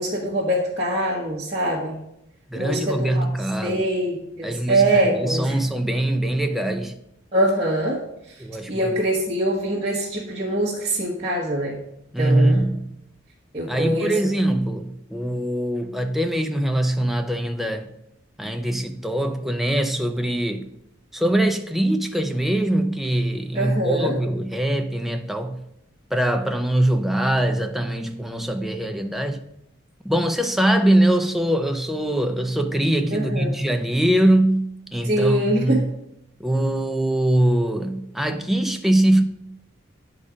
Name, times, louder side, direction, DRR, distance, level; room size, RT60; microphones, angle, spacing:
voice 1, 0.0-2.0 2.5-3.3 3.6-5.6 7.3-8.0 8.3-8.4 8.7-11.8 12.2-12.7 13.5-14.1 23.5-24.2 33.1-33.5 35.0-35.8, right 1 dB, 30° right, 1.2 m, -23 dB
voice 2, 2.5-3.9 4.4-7.0 8.4-9.0 12.1-12.9 13.7-17.9 18.4-20.7 21.1-25.6 26.1-29.4 30.0-35.9 36.4-39.2, right 1 dB, ahead, 0.4 m, -22 dB
9.6 x 4.0 x 5.0 m
head